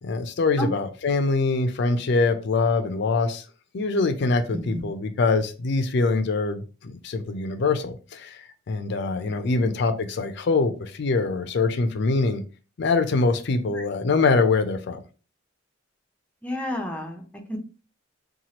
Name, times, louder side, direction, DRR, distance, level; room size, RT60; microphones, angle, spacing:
voice 1, 0.0-3.4 3.7-8.4 8.7-12.4 12.8-15.0, left 3 dB, 60° left, 0.4 m, -24 dB
voice 2, 9.3-9.7 16.4-17.6, left 1 dB, 5° left, 0.5 m, -31 dB
2.9 x 2.3 x 2.8 m
head